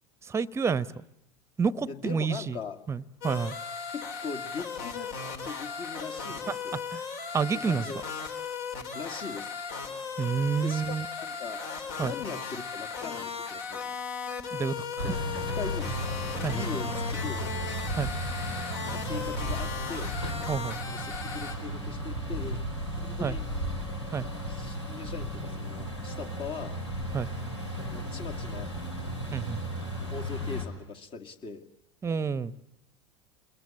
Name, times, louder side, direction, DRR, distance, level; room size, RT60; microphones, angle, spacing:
voice 1, 0.3-0.9 1.6-2.6 2.9-3.6 6.5-6.6 6.9-7.0 7.3-7.8 10.2-11.1 12.0-12.1 14.5-15.0 16.4-16.6 17.9-18.1 20.5-20.8 23.2-23.4 24.1-24.3 27.1-27.3 29.3-29.6 32.0-32.6, right 6 dB, 20° right, 18 dB, 0.9 m, -29 dB
voice 2, 1.9-2.8 3.9-5.1 5.4-6.8 7.5-8.0 8.9-9.5 10.6-11.6 12.0-13.9 15.0-15.2 15.5-15.9 16.4-17.5 18.9-20.2 20.9-22.6 23.0-23.4 24.5-26.8 27.9-28.7 30.1-31.6, left 5 dB, 40° left, 5 dB, 2.1 m, -40 dB
sound 1, 3.2-21.5, left 5 dB, 60° left, 3.6 m, -37 dB
sound 2, 15.0-30.7, equal, 90° left, 5.2 m, -34 dB
28.0 x 21.5 x 8.6 m, 0.81 s
hypercardioid pair, 80°, 14 cm